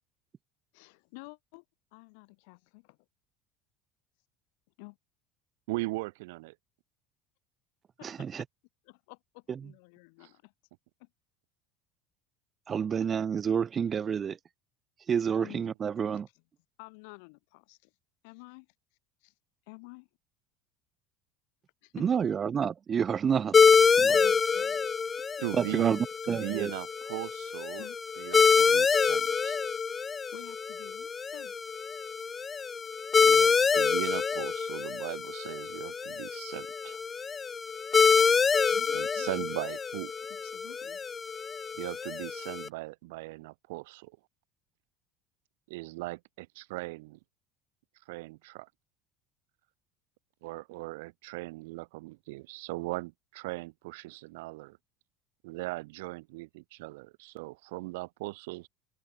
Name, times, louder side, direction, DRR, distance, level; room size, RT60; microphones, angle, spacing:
voice 1, 0.7-1.6 1.9-3.0 4.8-5.0 8.0-8.3 8.8-10.5 11.0-11.1 15.4-15.6 16.8-17.9 18.2-18.7 19.2-19.3 19.7-20.1 21.8-22.0 24.1-24.9 25.7-25.8 27.8-28.0 30.3-31.5 38.7-39.5 40.3-41.0, left 33 dB, 75° left, 6.1 m, -50 dB
voice 2, 5.7-6.6 10.2-10.3 25.4-25.9 26.2-27.9 28.2-29.7 33.2-37.1 38.9-40.1 41.7-44.2 45.7-47.2 48.1-48.7 50.4-54.8 55.4-58.7, right 23 dB, 85° right, 2.5 m, -39 dB
voice 3, 8.0-8.4 12.7-14.4 15.1-16.3 22.0-23.6 24.0-24.2 25.5-26.7, right 7 dB, 35° right, 1.8 m, -29 dB
sound 1, 23.5-42.7, left 5 dB, 25° left, 1.3 m, -26 dB
supercardioid pair, 105°, 0 cm